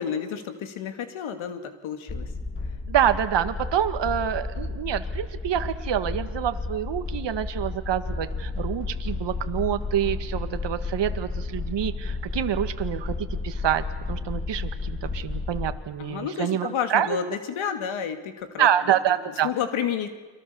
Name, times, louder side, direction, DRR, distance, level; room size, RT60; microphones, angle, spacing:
voice 1, 0.0-2.3 16.0-19.0 19.4-20.1, left 8 dB, 75° left, 7 dB, 2.6 m, -30 dB
sound 1, 2.1-15.8, left 3 dB, 25° left, 3.4 m, -32 dB
voice 2, 2.9-17.2 18.6-19.5, right 10 dB, 60° right, 8 dB, 1.8 m, -27 dB
30.0 x 23.0 x 7.0 m, 1.4 s
cardioid pair, 80°, 48 cm